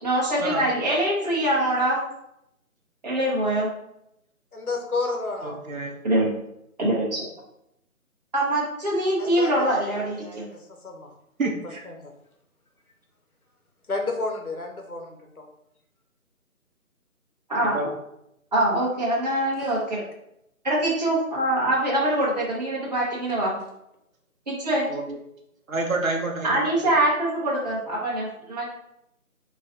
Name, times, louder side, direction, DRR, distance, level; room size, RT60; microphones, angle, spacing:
voice 1, 0.0-2.0 3.0-3.7 6.0-6.3 6.8-7.2 8.3-10.5 17.5-17.8 18.5-20.0 20.6-23.5 24.5-24.8 26.4-28.7, right 1 dB, 30° right, -6 dB, 1.6 m, -24 dB
voice 2, 4.5-5.6 9.2-10.4 10.8-11.1 11.9-12.0 13.9-15.2, left 3 dB, 80° left, 2 dB, 1.3 m, -30 dB
voice 3, 5.4-5.9 11.4-11.8 17.7-17.9 24.9-25.0 25.7-26.5, right 3 dB, 65° right, 1 dB, 1.2 m, -28 dB
5.5 x 3.3 x 2.9 m, 0.80 s
figure-of-eight pair, 165°, 44 cm